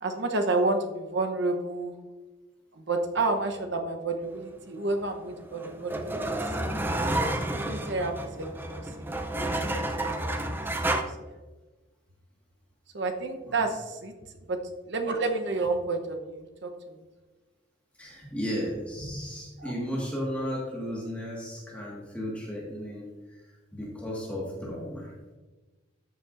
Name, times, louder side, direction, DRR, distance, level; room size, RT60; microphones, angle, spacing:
voice 1, 0.0-1.9 2.8-6.2 6.6-6.7 7.5-9.1 9.3-10.4 10.9-11.0 12.9-14.1 14.5-17.0 19.6-19.7, right 3 dB, 60° right, 5 dB, 0.9 m, -30 dB
sound 1, 5.1-11.0, right 1 dB, 10° right, 0.5 m, -30 dB
voice 2, 18.0-23.1 23.7-25.1, equal, 5° left, -5 dB, 1.7 m, -34 dB
13.0 x 6.8 x 2.6 m, 1.2 s
head